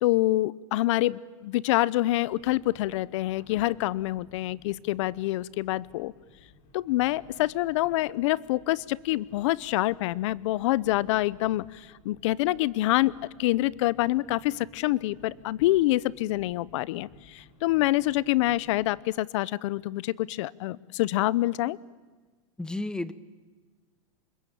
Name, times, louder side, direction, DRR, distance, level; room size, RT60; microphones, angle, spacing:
voice 1, 0.0-6.1 6.7-13.1 13.4-21.8, left 17 dB, 60° left, 21 dB, 0.8 m, -26 dB
sound 1, 2.3-19.0, left 3 dB, 45° left, 4.8 m, -57 dB
voice 2, 22.6-23.1, left 2 dB, 5° left, 16 dB, 0.9 m, -32 dB
26.5 x 22.0 x 8.8 m, 1.3 s
supercardioid pair, 140°, 18 cm